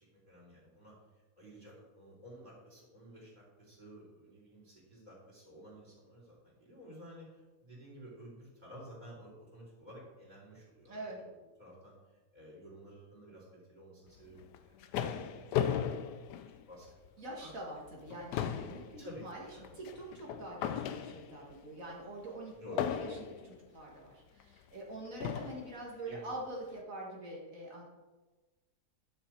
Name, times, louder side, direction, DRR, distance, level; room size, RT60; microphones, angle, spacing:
voice 1, 0.1-0.9 1.4-15.9 16.7-17.5 19.0-19.7 22.5-22.8 26.0-26.3, equal, 25° right, -4 dB, 3.9 m, -53 dB
voice 2, 10.9-11.2 17.2-19.5 19.7-27.8, right 1 dB, 55° right, -3 dB, 2.1 m, -45 dB
sound 1, 14.4-17.1 17.5-17.7 18.0-21.5 22.8-23.5 24.4-24.5 25.2-25.7, left 9 dB, 85° left, 1.2 m, -36 dB
11.0 x 6.7 x 4.6 m, 1.2 s
omnidirectional pair, 1.7 m